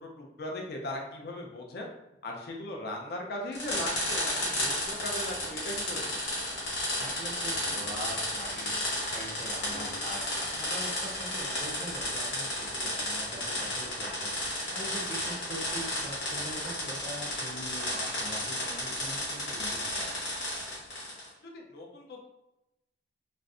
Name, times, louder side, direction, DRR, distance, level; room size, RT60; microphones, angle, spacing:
voice 1, 0.0-1.9 2.2-6.2 18.9-19.0 21.5-22.3, left 1 dB, 55° left, 0 dB, 0.5 m, -38 dB
sound 1, 3.5-21.3, left 1 dB, 85° left, 1.1 m, -33 dB
voice 2, 7.0-14.3 14.7-20.1, equal, 35° right, -3 dB, 0.5 m, -43 dB
2.5 x 2.1 x 2.4 m, 0.90 s
head